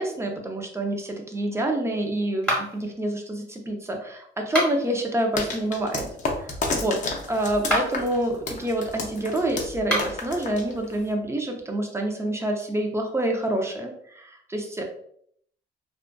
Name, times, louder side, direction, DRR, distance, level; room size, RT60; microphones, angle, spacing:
voice 1, 0.0-6.1 6.4-7.0 7.3-14.8, right 1 dB, 15° right, 2 dB, 0.5 m, -27 dB
sound 1, 2.4-2.9 4.4-5.0 7.5-8.1 9.8-10.3, equal, 5° left, 1.3 m, -27 dB
sound 2, 5.4-11.1, left 3 dB, 40° left, 0.6 m, -31 dB
2.4 x 2.3 x 2.2 m, 0.67 s
cardioid pair, 90°, 20 cm